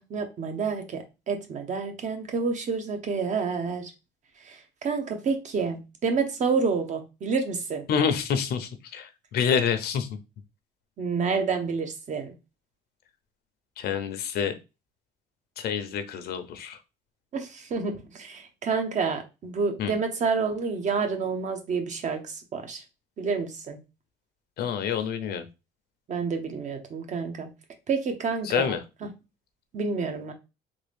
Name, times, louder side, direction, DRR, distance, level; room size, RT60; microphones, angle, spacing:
voice 1, 0.0-3.9 4.4-7.8 11.0-12.3 17.3-22.8 23.2-23.8 26.1-27.5 27.9-28.8 29.7-30.3, right 5 dB, 45° right, 1.0 m, -29 dB
voice 2, 7.9-10.2 13.8-14.5 15.6-16.8 19.8-19.9 24.6-25.4 28.4-28.8, left 7 dB, 70° left, 0.8 m, -27 dB
3.6 x 2.4 x 3.4 m
cardioid pair, 110°, 17 cm